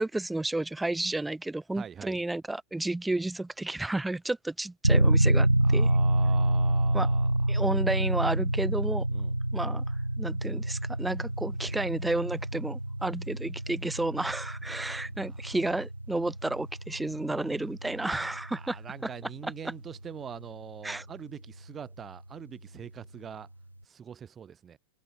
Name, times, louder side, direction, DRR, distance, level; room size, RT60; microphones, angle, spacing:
voice 1, 0.0-5.9 6.9-7.1 7.5-9.1 9.5-9.8 10.2-18.8 19.4-19.5 20.8-21.0, right 2 dB, 5° right, 4.8 m, -31 dB
voice 2, 1.7-2.2 5.6-7.7 9.1-9.3 14.7-15.4 18.0-18.2 18.6-23.5 23.8-24.8, right 7 dB, 20° right, 4.8 m, -44 dB
sound 1, 4.8-21.6, right 1 dB, 85° right, 0.7 m, -28 dB
figure-of-eight pair, 90°, 0 cm